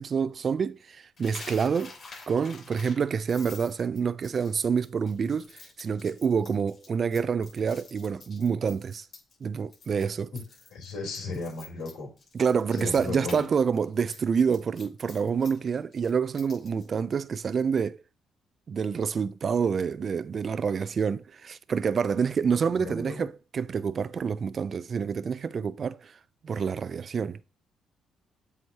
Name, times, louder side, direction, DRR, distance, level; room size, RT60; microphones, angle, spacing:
voice 1, 0.0-1.9 2.3-9.1 9.4-10.3 12.3-18.0 18.7-26.1 26.4-27.4, right 6 dB, 45° right, 0.3 m, -27 dB
Coin (dropping), 1.2-9.4 9.7-10.0 10.3-13.5 13.7-16.9, left 4 dB, 50° left, 3.3 m, -48 dB
voice 2, 10.7-12.1 12.8-13.5 22.8-23.3, left 3 dB, 85° left, 3.6 m, -35 dB
7.9 x 4.7 x 2.8 m
cardioid pair, 90°, 0 cm